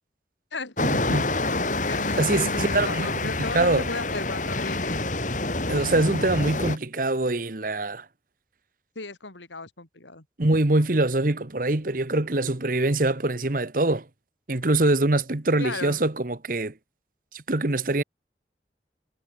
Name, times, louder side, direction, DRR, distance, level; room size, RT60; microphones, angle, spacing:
sound 1, 0.8-6.8, left 2 dB, 45° left, 3.5 m, -27 dB
voice 1, 0.8-1.3 2.2-3.8 5.7-8.0 10.4-14.0 14.5-16.7 17.3-18.0, right 2 dB, 50° right, 1.3 m, -24 dB
voice 2, 1.7-5.0 9.0-10.3 15.6-16.0, left 3 dB, 90° left, 3.6 m, -35 dB
head